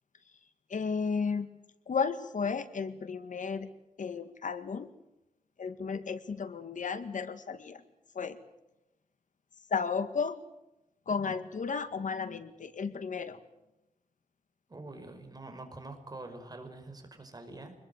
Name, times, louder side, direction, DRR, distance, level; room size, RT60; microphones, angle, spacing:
voice 1, 0.7-1.5 1.9-3.7 4.0-4.9 5.6-7.8 8.2-8.4 9.7-10.4 11.1-13.4, left 5 dB, 75° left, 11 dB, 2.0 m, -33 dB
voice 2, 14.7-17.7, right 2 dB, 30° right, 6 dB, 5.5 m, -45 dB
26.0 x 21.0 x 8.1 m, 0.92 s
wide cardioid pair, 130°, 13 cm